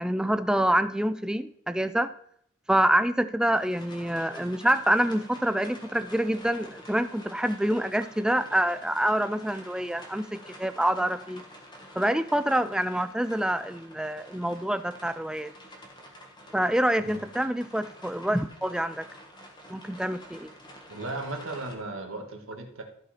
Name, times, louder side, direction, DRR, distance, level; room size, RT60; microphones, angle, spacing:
voice 1, 0.0-2.1 2.7-11.4 12.0-15.5 16.5-19.1 19.7-20.5, right 1 dB, 5° right, 11 dB, 0.3 m, -26 dB
sound 1, 3.5-21.7, equal, 20° left, 1.5 m, -48 dB
voice 2, 20.9-22.8, right 2 dB, 75° right, 3 dB, 1.7 m, -36 dB
14.0 x 5.0 x 4.3 m, 0.67 s
head